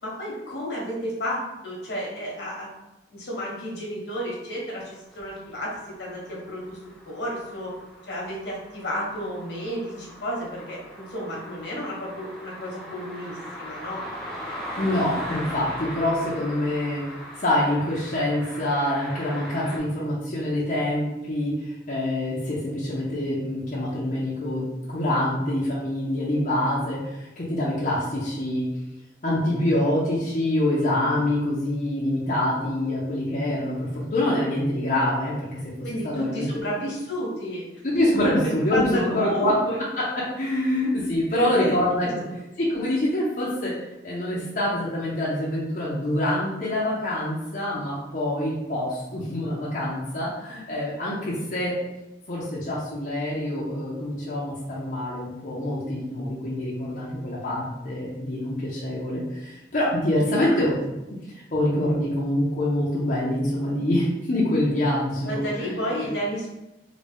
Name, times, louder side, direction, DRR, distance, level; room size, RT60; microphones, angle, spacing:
voice 1, 0.0-2.7 3.1-5.7 6.0-6.8 7.0-7.7 8.1-14.0 35.8-37.8 38.2-39.8 41.3-42.1 60.5-60.6 65.2-66.5, equal, 75° left, -4 dB, 1.1 m, -31 dB
sound 1, 5.1-19.8, equal, 5° left, 0.6 m, -39 dB
voice 2, 14.8-28.6 29.2-35.6 36.0-36.7 37.8-39.5 40.4-42.1 42.6-43.7 44.0-51.7 52.3-61.2 61.5-65.8, left 1 dB, 50° left, -7 dB, 0.7 m, -25 dB
3.8 x 2.2 x 3.4 m, 0.97 s
head